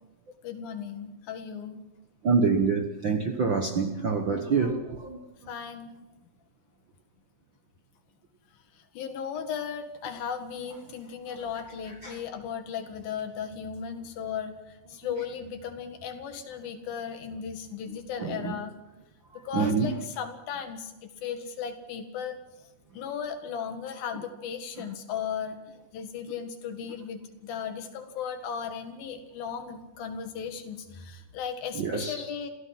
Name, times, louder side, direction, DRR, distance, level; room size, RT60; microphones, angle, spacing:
voice 1, 0.4-1.8 5.5-6.0 9.0-14.6 14.9-18.7 19.4-20.9 21.2-22.4 22.9-25.6 25.9-32.5, left 7 dB, 90° left, 3.6 m, -36 dB
voice 2, 2.2-5.2 12.0-12.2 18.2-18.5 19.5-20.0 24.8-24.9 31.7-32.2, right 5 dB, 60° right, 1.2 m, -26 dB
27.5 x 16.0 x 6.0 m
omnidirectional pair, 4.0 m